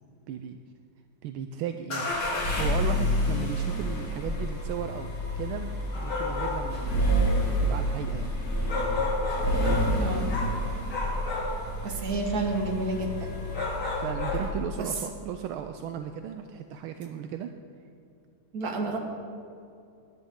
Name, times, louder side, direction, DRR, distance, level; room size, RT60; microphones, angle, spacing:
voice 1, 0.3-0.6 1.2-2.2 2.5-8.3 13.9-17.5, right 9 dB, 80° right, 7 dB, 1.4 m, -36 dB
sound 1, 1.9-14.8, equal, 90° left, 3.3 m, -29 dB
sound 2, 5.9-6.7 8.7-9.9 10.3-10.6 10.9-11.6 13.5-14.5, left 3 dB, 50° left, 3.5 m, -31 dB
voice 2, 10.0-10.3 11.8-13.3 14.8-14.9 18.5-19.0, right 3 dB, 45° right, 2 dB, 1.9 m, -30 dB
19.0 x 10.5 x 3.7 m, 2.5 s
omnidirectional pair, 2.4 m